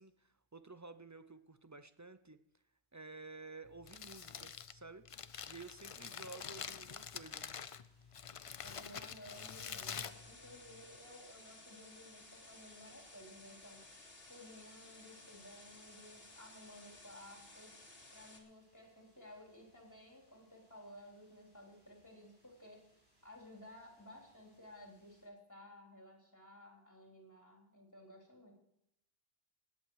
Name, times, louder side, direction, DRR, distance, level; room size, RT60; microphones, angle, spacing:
voice 1, 0.0-2.4 2.9-5.1 5.5-7.5, right 3 dB, 30° right, 11 dB, 0.3 m, -52 dB
Crumpling crinkling, 3.7-11.0, left 7 dB, 50° left, 0.4 m, -47 dB
sound 1, 7.3-25.3, equal, 70° right, 7.7 m, -75 dB
voice 2, 8.6-13.9 14.3-17.7 18.1-22.8 23.2-28.5, left 1 dB, 15° left, -1 dB, 3.6 m, -56 dB
sound 2, 9.3-18.4, left 2 dB, 65° left, 2.3 m, -57 dB
20.0 x 8.5 x 4.7 m, 0.77 s
omnidirectional pair, 1.1 m